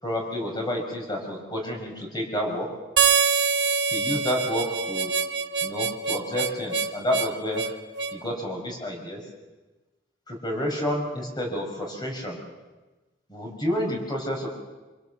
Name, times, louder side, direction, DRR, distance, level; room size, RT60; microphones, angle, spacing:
voice 1, 0.0-2.7 3.9-5.1 5.6-7.6 8.1-9.2 10.3-12.4 13.3-14.5, equal, 25° left, 0 dB, 5.3 m, -29 dB
Harmonica, 3.0-8.2, right 5 dB, 70° right, 1.1 m, -25 dB
26.5 x 25.0 x 6.9 m, 1.2 s
head